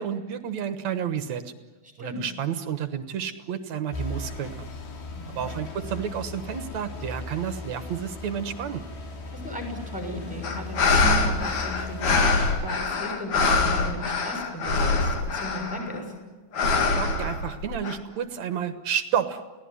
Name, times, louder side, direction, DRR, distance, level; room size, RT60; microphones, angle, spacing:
voice 1, 0.0-1.5 2.0-4.7 5.4-8.8 17.0-19.4, right 8 dB, 60° right, 10 dB, 2.1 m, -30 dB
sound 1, 3.9-12.5, left 2 dB, 90° left, 5.2 m, -37 dB
voice 2, 9.3-16.1, left 1 dB, ahead, 3 dB, 6.2 m, -36 dB
sound 2, 10.4-16.0 16.5-18.0, left 3 dB, 55° left, 3.7 m, -24 dB
29.5 x 18.0 x 9.6 m, 1.3 s
omnidirectional pair, 4.2 m